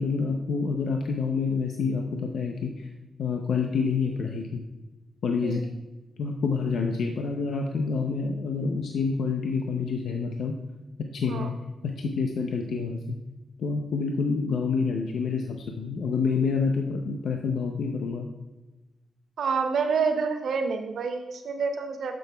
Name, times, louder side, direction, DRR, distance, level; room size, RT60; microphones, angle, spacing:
voice 1, 0.0-2.9 3.2-4.6 5.2-5.6 6.2-10.5 11.1-11.5 11.8-13.2 13.6-18.3, left 5 dB, 85° left, 2 dB, 0.6 m, -28 dB
voice 2, 19.4-22.2, right 5 dB, 75° right, 5 dB, 0.6 m, -28 dB
9.8 x 6.2 x 2.3 m, 1.1 s
cardioid pair, 85°, 0 cm